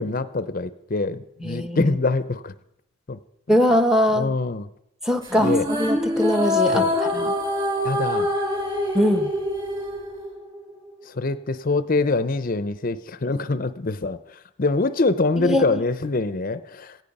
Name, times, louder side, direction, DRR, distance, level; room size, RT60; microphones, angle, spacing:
voice 1, 0.0-2.5 3.1-3.2 4.1-4.7 5.4-5.7 6.7-6.9 7.8-8.3 11.1-17.0, left 3 dB, 40° left, 13 dB, 0.6 m, -24 dB
voice 2, 1.4-2.0 3.5-4.3 5.0-6.9 7.1-7.3 8.9-9.3 15.4-15.8, equal, 5° right, 9 dB, 0.8 m, -21 dB
sound 1, 5.2-10.7, left 1 dB, 25° right, 4.0 m, -24 dB
17.5 x 15.0 x 5.4 m, 0.80 s
head